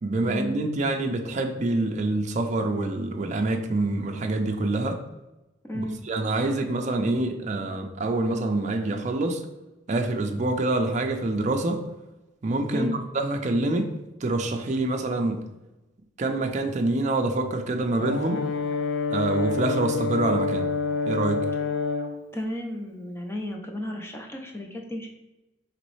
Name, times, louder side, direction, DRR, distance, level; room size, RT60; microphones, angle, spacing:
voice 1, 0.0-5.0 5.7-9.4 9.9-11.8 12.4-12.9 13.1-13.9 14.2-15.4 16.2-18.4 19.1-20.7 21.1-21.5, right 2 dB, 40° right, 4 dB, 0.4 m, -26 dB
voice 2, 5.6-6.0 12.7-13.0 22.3-25.1, left 1 dB, 15° left, 2 dB, 0.6 m, -33 dB
Brass instrument, 18.0-22.2, left 4 dB, 70° left, 0.4 m, -27 dB
5.0 x 3.0 x 3.1 m, 1.0 s
head